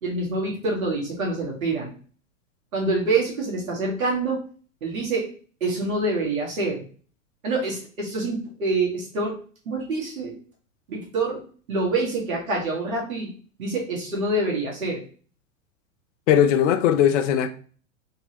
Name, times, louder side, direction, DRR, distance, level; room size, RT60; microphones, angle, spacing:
voice 1, 0.0-1.9 2.7-4.4 4.8-5.3 5.6-6.9 7.4-9.3 9.7-10.3 10.9-11.4 11.7-13.3 13.6-15.0, right 2 dB, 80° right, 1.8 m, -26 dB
voice 2, 16.3-17.5, left 9 dB, 60° left, 0.6 m, -19 dB
3.8 x 2.9 x 2.9 m
hypercardioid pair, 105°, 41 cm